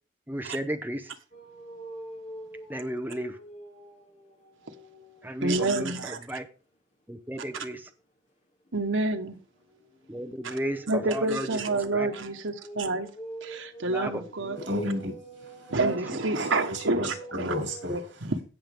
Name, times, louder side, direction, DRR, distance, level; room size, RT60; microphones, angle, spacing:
voice 1, 0.3-1.1 2.7-3.3 5.2-5.9 6.3-6.4 7.1-7.8 10.1-11.5 11.9-12.1 13.9-14.2 14.5-14.6, equal, 10° right, 0.7 m, -33 dB
sound 1, 1.3-5.5 5.9-6.2 8.6-17.9, right 2 dB, 40° left, 2.9 m, -46 dB
voice 2, 5.4-6.2 7.4-7.5 8.7-9.4 10.4-10.6 10.9-13.1 13.4-14.6 15.7-17.6 17.9-18.4, right 2 dB, 85° right, 1.4 m, -28 dB
voice 3, 14.5-15.7 16.3-18.0, left 1 dB, 65° right, 6.7 m, -33 dB
17.0 x 6.2 x 3.7 m
head